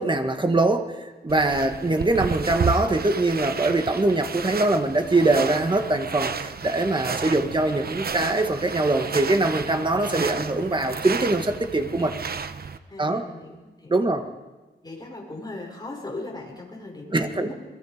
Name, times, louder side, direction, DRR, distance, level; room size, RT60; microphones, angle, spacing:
voice 1, 0.0-12.1 13.0-13.2 13.9-14.2 17.1-17.5, right 2 dB, 25° right, 6 dB, 1.8 m, -23 dB
sound 1, 1.3-12.8, right 5 dB, 55° right, 1.0 m, -32 dB
voice 2, 12.9-14.1 14.8-17.5, left 2 dB, 20° left, 0 dB, 6.1 m, -38 dB
29.0 x 22.0 x 5.2 m, 1.2 s
wide cardioid pair, 105°, 19 cm